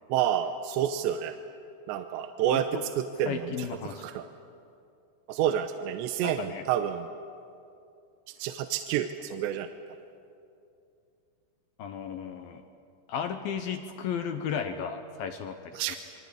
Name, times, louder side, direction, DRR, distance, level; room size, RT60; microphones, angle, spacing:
voice 1, 0.1-1.3 1.9-2.7 2.9-4.2 5.3-7.1 8.4-9.7 15.7-16.0, right 10 dB, 80° right, 8 dB, 3.0 m, -29 dB
voice 2, 2.5-2.8 3.3-4.0 6.2-6.6 11.8-12.6 13.1-15.9, left 7 dB, 70° left, 7 dB, 2.4 m, -34 dB
28.0 x 24.0 x 8.5 m, 2.5 s
omnidirectional pair, 5.2 m